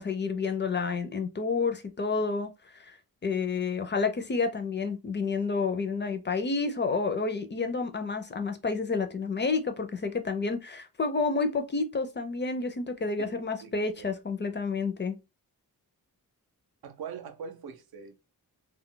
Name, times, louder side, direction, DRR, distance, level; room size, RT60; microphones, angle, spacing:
voice 1, 0.0-2.5 2.8-3.0 3.2-15.2, left 4 dB, 30° left, 0.4 m, -30 dB
voice 2, 13.3-14.1 16.8-18.3, right 6 dB, 80° right, 0.6 m, -43 dB
2.3 x 2.1 x 3.7 m
wide cardioid pair, 150°, 36 cm